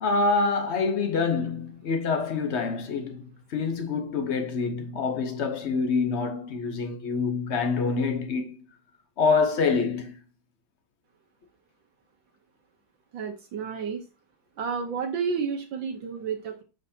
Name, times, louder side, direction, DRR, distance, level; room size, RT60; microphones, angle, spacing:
voice 1, 0.0-8.5 9.2-10.2, left 4 dB, 60° left, 0.7 m, -26 dB
voice 2, 13.1-14.0 14.6-16.6, right 6 dB, 65° right, 1.5 m, -31 dB
7.3 x 5.1 x 2.7 m
omnidirectional pair, 2.3 m